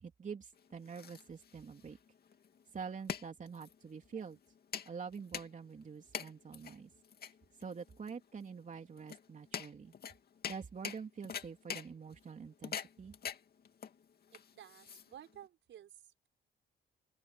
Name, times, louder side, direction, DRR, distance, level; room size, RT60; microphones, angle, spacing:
voice 1, 0.0-2.0 2.7-4.4 4.9-6.9 7.6-9.9 10.5-13.1, right 6 dB, 40° right, 3.0 m, -46 dB
sound 1, 0.5-15.4, left 7 dB, 50° left, 2.4 m, -46 dB
voice 2, 14.3-16.3, right 10 dB, 70° right, 5.7 m, -54 dB
open air
cardioid pair, 90°, 20 cm